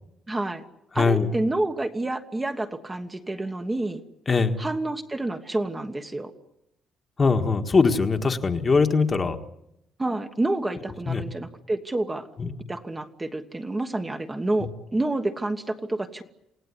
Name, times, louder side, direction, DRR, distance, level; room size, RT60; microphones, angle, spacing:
voice 1, 0.3-0.6 0.9-4.0 4.6-6.3 10.0-12.3 12.7-16.2, right 2 dB, 15° right, 5 dB, 1.3 m, -28 dB
voice 2, 1.0-1.3 4.3-4.6 7.2-9.4 11.1-11.2 12.4-12.6, left 4 dB, 25° left, 5 dB, 1.7 m, -21 dB
28.5 x 18.0 x 9.8 m, 0.82 s
cardioid pair, 155°, 0 cm